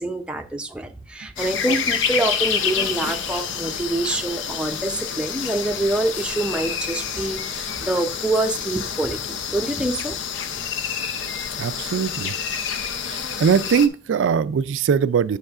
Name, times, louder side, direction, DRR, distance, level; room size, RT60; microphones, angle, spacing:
voice 1, 0.0-9.2 9.5-10.2, right 2 dB, 5° right, 0.5 m, -26 dB
sound 1, 1.4-13.9, left 7 dB, 80° left, 0.5 m, -28 dB
voice 2, 10.8-12.3 13.0-15.4, right 6 dB, 85° right, 0.3 m, -22 dB
7.8 x 6.5 x 2.4 m
head